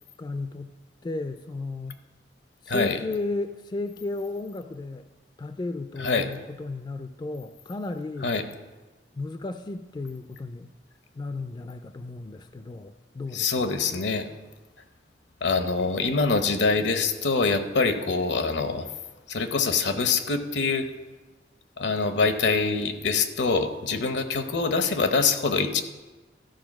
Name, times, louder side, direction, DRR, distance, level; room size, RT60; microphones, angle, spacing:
voice 1, 0.2-0.8 1.0-2.0 2.6-5.0 5.4-8.3 9.1-10.7 11.2-13.7, left 2 dB, 25° left, 9 dB, 0.3 m, -34 dB
voice 2, 2.7-3.0 6.0-6.3 8.2-8.5 13.3-14.3 15.4-18.9 19.3-20.9 21.8-25.8, left 4 dB, 75° left, 8 dB, 0.8 m, -24 dB
13.0 x 4.5 x 6.0 m, 1.2 s
head